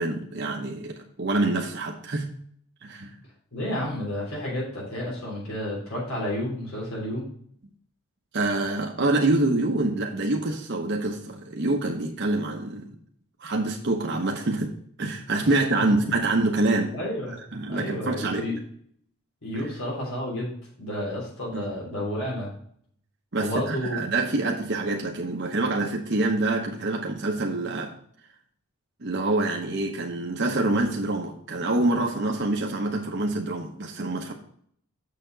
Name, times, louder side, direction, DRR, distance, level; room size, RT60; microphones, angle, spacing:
voice 1, 0.0-2.3 2.8-3.1 8.3-12.9 13.4-17.0 17.5-18.4 19.5-19.6 21.5-21.7 23.3-27.9 29.0-34.3, right 2 dB, 50° right, 1 dB, 0.9 m, -26 dB
voice 2, 3.5-7.2 15.4-15.5 16.9-18.6 19.4-20.5 20.8-22.5 23.4-24.0, left 1 dB, 80° left, -4 dB, 3.2 m, -31 dB
6.8 x 6.7 x 3.9 m, 0.64 s
head